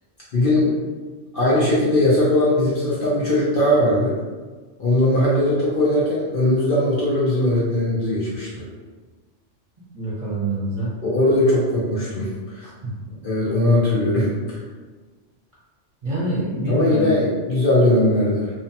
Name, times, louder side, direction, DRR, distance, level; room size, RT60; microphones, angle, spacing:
voice 1, 0.3-0.7 1.3-4.1 4.8-8.7 11.0-12.7 13.1-14.6 16.7-18.5, left 1 dB, 55° left, -7 dB, 0.7 m, -19 dB
voice 2, 9.9-10.9 12.6-12.9 16.0-17.3, right 1 dB, 45° right, -8 dB, 1.0 m, -26 dB
2.8 x 2.1 x 2.7 m, 1.3 s
omnidirectional pair, 1.3 m